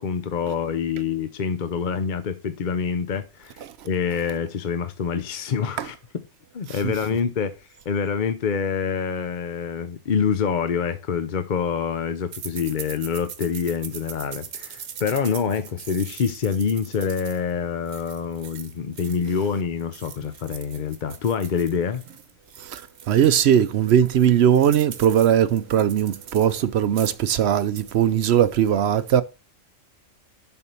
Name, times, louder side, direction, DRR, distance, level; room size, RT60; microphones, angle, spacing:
voice 1, 0.0-6.0 6.5-7.5 7.9-22.0, left 6 dB, 45° left, 0.7 m, -26 dB
sound 1, 12.3-19.5 19.8-23.4 23.8-23.9 24.2-26.6 26.9-27.3 27.6-28.0, right 8 dB, 85° right, 1.3 m, -41 dB
voice 2, 23.1-29.2, right 9 dB, 65° right, 0.8 m, -19 dB
7.1 x 4.4 x 6.8 m
omnidirectional pair, 1.3 m